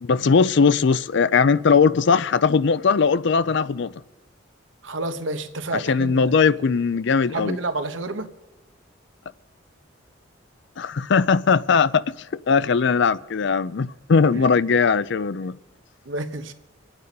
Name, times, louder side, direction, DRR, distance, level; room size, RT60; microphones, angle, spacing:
voice 1, 0.0-3.9 5.7-7.6 10.8-12.0 12.5-15.6, left 5 dB, 65° left, 0.5 m, -19 dB
voice 2, 4.8-6.3 7.3-8.3 14.3-14.5 16.0-16.5, right 2 dB, 70° right, 1.1 m, -29 dB
25.5 x 9.0 x 5.4 m
head